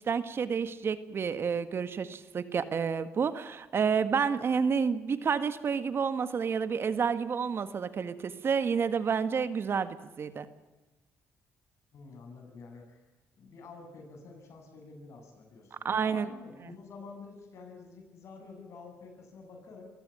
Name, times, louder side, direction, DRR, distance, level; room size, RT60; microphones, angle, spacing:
voice 1, 0.0-10.5 15.8-16.3, right 6 dB, 50° right, 12 dB, 1.7 m, -29 dB
voice 2, 11.9-13.1 13.4-19.9, left 4 dB, 70° left, 3 dB, 8.0 m, -49 dB
24.5 x 16.5 x 9.5 m, 1.2 s
cardioid pair, 80°, 5 cm